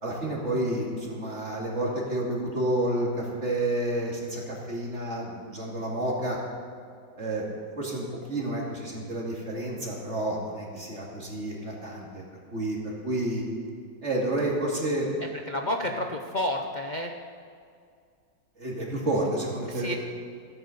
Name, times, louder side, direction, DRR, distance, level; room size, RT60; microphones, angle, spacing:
voice 1, 0.0-6.4 7.2-7.5 7.8-12.2 12.5-13.4 14.0-15.1 18.6-20.0, right 1 dB, 40° right, -3 dB, 2.7 m, -30 dB
voice 2, 15.5-17.1 19.7-19.9, left 1 dB, 55° left, 1 dB, 0.5 m, -30 dB
15.0 x 9.1 x 6.6 m, 2.3 s
omnidirectional pair, 1.9 m